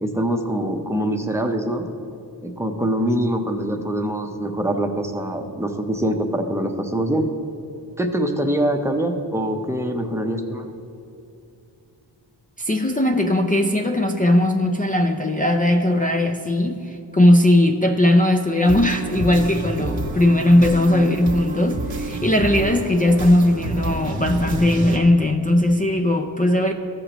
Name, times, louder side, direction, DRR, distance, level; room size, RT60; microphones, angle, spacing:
voice 1, 0.0-1.8 2.4-7.2 8.0-10.7, right 1 dB, 5° right, 4 dB, 0.8 m, -24 dB
voice 2, 12.6-26.7, left 1 dB, 20° left, 4 dB, 0.5 m, -18 dB
sound 1, 18.6-25.0, right 2 dB, 80° right, 1.2 m, -29 dB
14.5 x 6.6 x 3.0 m, 2.7 s
cardioid pair, 65°, 45 cm